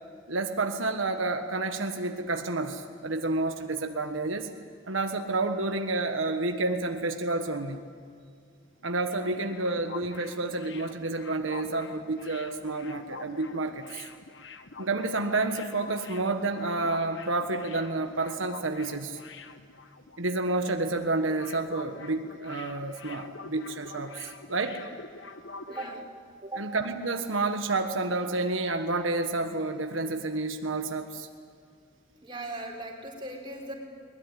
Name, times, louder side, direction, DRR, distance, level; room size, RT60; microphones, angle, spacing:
voice 1, 0.3-4.5 4.9-7.8 8.8-14.1 14.8-19.2 20.2-24.8 26.6-31.3, right 2 dB, 90° right, 6 dB, 1.4 m, -30 dB
sound 1, 8.8-20.4 20.6-20.8 21.1-26.0, left 4 dB, 65° left, 1.3 m, -46 dB
voice 2, 25.7-26.0 26.4-26.6 32.2-33.7, right 2 dB, 25° right, 0 dB, 4.3 m, -38 dB
21.5 x 20.5 x 9.9 m, 2.2 s
head